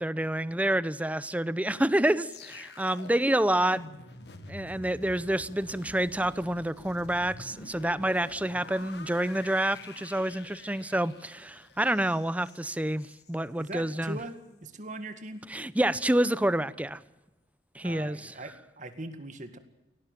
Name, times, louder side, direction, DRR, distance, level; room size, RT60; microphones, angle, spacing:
voice 1, 0.0-3.8 4.5-14.2 15.5-17.0 17.7-18.3, right 1 dB, 10° right, 0.6 m, -28 dB
sound 1, 2.3-13.4 13.7-13.9, left 2 dB, 65° left, 1.8 m, -47 dB
voice 2, 13.6-15.5 17.8-19.6, right 2 dB, 45° right, 1.9 m, -41 dB
18.5 x 17.5 x 9.1 m
head